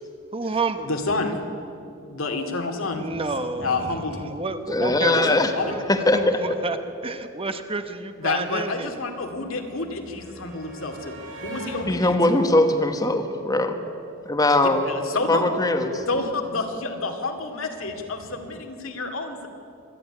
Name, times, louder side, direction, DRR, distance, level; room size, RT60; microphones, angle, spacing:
voice 1, 0.3-0.9 2.9-5.4 5.6-5.8 6.1-6.8 7.0-9.0, right 3 dB, 25° right, 9 dB, 0.9 m, -30 dB
voice 2, 0.9-1.4 2.1-3.1 3.6-4.3 5.0-5.7 8.2-11.2 11.4-12.4 14.9-15.4 16.1-19.5, left 3 dB, 75° left, 4 dB, 2.4 m, -29 dB
voice 3, 4.7-5.5 5.9-6.4 11.9-13.8 14.2-14.8 15.3-16.0, left 2 dB, 20° left, 6 dB, 1.2 m, -20 dB
sound 1, 7.7-13.8 15.0-15.1 15.4-15.6, right 2 dB, 70° right, 6.3 m, -42 dB
25.5 x 10.5 x 10.0 m, 2.7 s
head